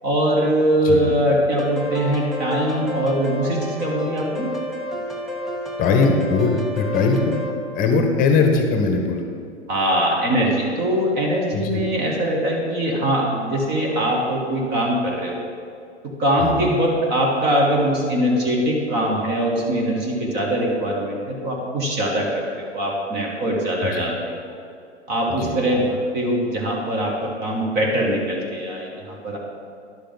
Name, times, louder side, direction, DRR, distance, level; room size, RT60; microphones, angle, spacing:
voice 1, 0.0-4.5 9.7-15.4 16.2-24.4 25.1-29.4, right 1 dB, 30° right, -1 dB, 1.5 m, -22 dB
voice 2, 0.8-1.2 5.8-7.3 7.7-9.3 11.5-11.8 16.4-16.7 23.8-24.1 25.4-25.6, left 4 dB, 25° left, 4 dB, 1.0 m, -20 dB
sound 1, 1.6-7.5, left 1 dB, ahead, 0.4 m, -30 dB
11.0 x 6.7 x 3.9 m, 2.3 s
figure-of-eight pair, 105°, 35 cm